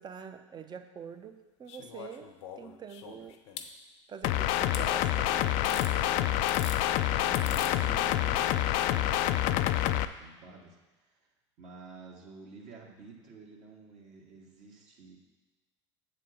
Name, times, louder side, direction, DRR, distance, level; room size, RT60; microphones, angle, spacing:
voice 1, 0.0-3.4 4.1-6.3 7.4-7.9, right 7 dB, 30° right, 7 dB, 0.8 m, -46 dB
sound 1, 1.7-3.7 4.7-4.9 5.6-5.9 6.4-6.8 7.3-7.7 9.0-9.1, left 8 dB, 75° left, 0.8 m, -43 dB
sound 2, 4.2-10.0, left 13 dB, 55° left, 0.4 m, -27 dB
voice 2, 7.1-11.3 11.6-15.2, right 4 dB, 55° right, -2 dB, 2.1 m, -50 dB
7.5 x 4.2 x 6.5 m, 1.2 s
hypercardioid pair, 85°, 15 cm